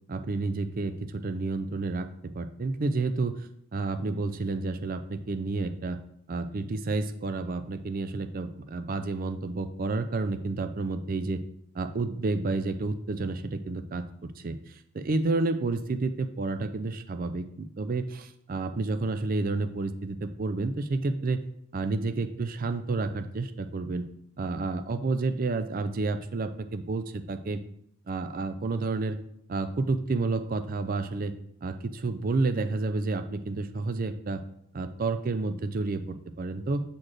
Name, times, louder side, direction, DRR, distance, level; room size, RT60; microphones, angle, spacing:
voice 1, 0.1-6.0 6.3-11.4 11.7-21.4 21.7-24.1 24.4-27.6 28.1-29.2 29.5-31.3 31.6-34.4 34.7-36.8, right 3 dB, 40° right, 9 dB, 0.4 m, -30 dB
7.4 x 4.3 x 3.2 m, 0.72 s
head